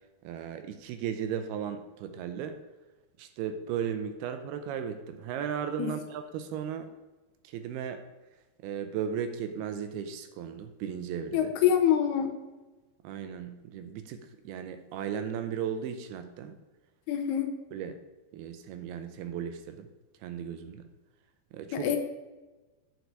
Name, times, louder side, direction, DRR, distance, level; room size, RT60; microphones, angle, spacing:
voice 1, 0.2-2.6 3.2-6.9 7.4-8.0 8.6-11.5 13.0-16.6 17.7-17.9 18.3-19.9 20.2-20.9 21.5-21.9, right 8 dB, 80° right, 8 dB, 2.4 m, -36 dB
voice 2, 11.3-12.3 17.1-17.5 21.7-22.0, left 9 dB, 80° left, 5 dB, 2.7 m, -25 dB
9.4 x 6.5 x 4.7 m, 1.2 s
omnidirectional pair, 4.8 m